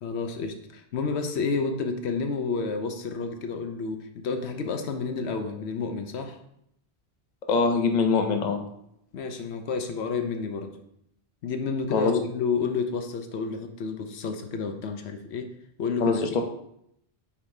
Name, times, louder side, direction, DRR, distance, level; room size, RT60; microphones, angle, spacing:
voice 1, 0.0-6.4 9.1-10.8 11.4-15.5 15.8-16.2, left 4 dB, 80° left, 6 dB, 1.0 m, -30 dB
voice 2, 7.5-8.6 11.9-12.1 16.0-16.4, left 4 dB, 45° left, 4 dB, 0.8 m, -23 dB
8.3 x 5.0 x 2.7 m, 0.74 s
omnidirectional pair, 1.1 m